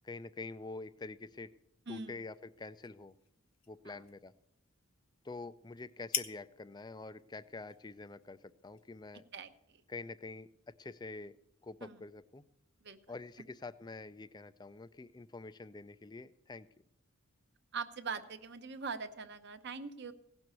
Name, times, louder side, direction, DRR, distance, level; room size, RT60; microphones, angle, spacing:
voice 1, 0.0-1.5 1.9-3.1 3.7-4.3 5.2-9.2 9.9-11.3 11.6-12.4 13.1-16.7, left 3 dB, 20° left, 14 dB, 0.4 m, -46 dB
sound 1, 1.8-9.5, left 9 dB, 70° left, 1.0 m, -47 dB
voice 2, 1.9-2.2 3.8-4.0 9.3-9.5 11.8-12.0 12.8-13.0 17.7-20.1, right 5 dB, 50° right, 9 dB, 0.9 m, -42 dB
17.0 x 6.1 x 8.2 m, 0.80 s
head